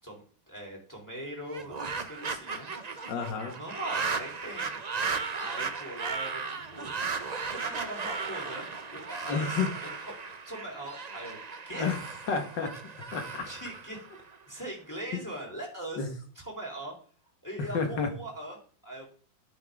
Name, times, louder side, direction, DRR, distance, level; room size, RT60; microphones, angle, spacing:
voice 1, 0.0-2.7 3.6-4.8 5.4-8.7 8.9-9.9 10.4-11.4 11.7-12.0 12.6-13.0 13.5-16.0 16.4-16.9 17.4-19.1, right 1 dB, 10° left, -1 dB, 3.6 m, -41 dB
sound 1, 1.4-14.6, right 5 dB, 65° right, 0.4 m, -36 dB
voice 2, 3.1-3.6 9.3-9.7 11.7-12.0 12.3-12.7 13.1-13.5 16.0-16.1 17.7-18.1, left 5 dB, 65° left, 6 dB, 2.4 m, -30 dB
11.5 x 7.7 x 3.8 m, 0.42 s
omnidirectional pair, 2.1 m